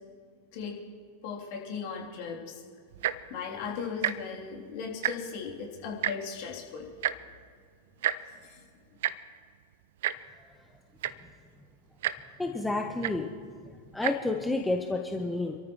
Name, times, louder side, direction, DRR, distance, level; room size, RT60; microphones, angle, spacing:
voice 1, 1.2-2.6 3.3-6.9 8.4-8.6, left 6 dB, 45° left, -2 dB, 3.4 m, -37 dB
Tick-tock, 2.9-3.3 4.0-4.1 4.5-4.6 4.9-5.4 6.0-6.1 7.0-7.2 8.0-8.2 9.0-9.1 10.0-10.2 10.7-10.8 11.0-11.3 12.0-12.2 13.0-13.1 13.9-14.1 14.8-14.9, right 12 dB, 55° right, 0.5 m, -29 dB
voice 2, 12.4-13.3 13.9-15.6, left 2 dB, 5° left, 3 dB, 0.9 m, -30 dB
28.0 x 13.5 x 3.2 m, 2.1 s
figure-of-eight pair, 90°, 0 cm